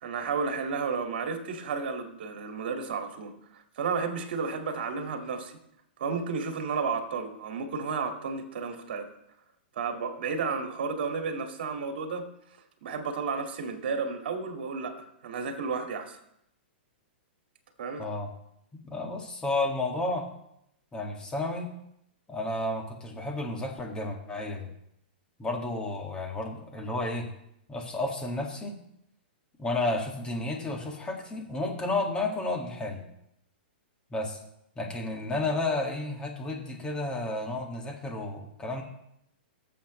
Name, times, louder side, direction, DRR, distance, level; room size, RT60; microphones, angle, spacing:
voice 1, 0.0-5.6 6.0-9.1 9.8-12.2 12.8-16.2 17.8-18.1, right 5 dB, 65° right, 4 dB, 2.0 m, -32 dB
voice 2, 18.0-18.3 18.8-20.3 20.9-21.7 22.3-24.7 25.4-27.3 27.7-28.8 29.6-33.0 34.1-34.4 34.8-38.8, left 2 dB, 15° left, 1 dB, 1.9 m, -32 dB
18.5 x 7.3 x 3.2 m, 0.77 s
hypercardioid pair, 135°, 6 cm